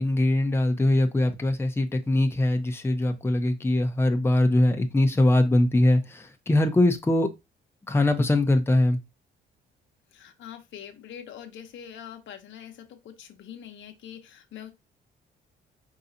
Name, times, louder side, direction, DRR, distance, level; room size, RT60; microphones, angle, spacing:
voice 1, 0.0-7.3 7.9-9.0, left 1 dB, 10° left, 0.7 m, -22 dB
voice 2, 10.1-14.7, left 9 dB, 70° left, 0.9 m, -43 dB
4.7 x 4.0 x 2.7 m
cardioid pair, 90°, 20 cm